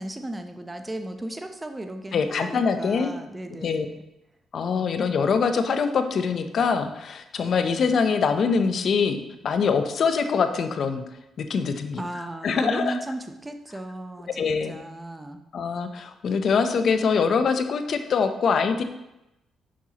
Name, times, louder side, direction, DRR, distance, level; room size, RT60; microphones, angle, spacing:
voice 1, 0.0-4.0 12.0-15.4, right 1 dB, 15° right, 7 dB, 0.8 m, -35 dB
voice 2, 2.1-3.1 3.6-3.9 4.5-11.0 11.4-12.0 12.4-13.0 14.4-14.8 15.5-18.8, left 5 dB, 60° left, 8 dB, 0.6 m, -24 dB
7.4 x 5.5 x 2.9 m, 0.90 s
cardioid pair, 70°, 0 cm